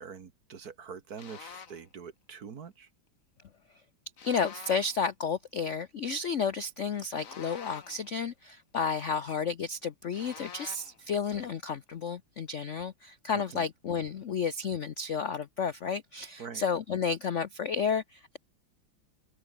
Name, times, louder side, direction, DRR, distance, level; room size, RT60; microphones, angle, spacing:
voice 1, 0.0-2.9 13.3-13.7 16.4-16.6, right 6 dB, 50° right, 1.8 m, -44 dB
sound 1, 1.2-1.9 4.2-5.0 7.1-8.1 10.1-11.0, left 6 dB, 45° left, 1.7 m, -47 dB
voice 2, 4.2-18.4, left 6 dB, 60° left, 0.8 m, -32 dB
omnidirectional pair, 2.3 m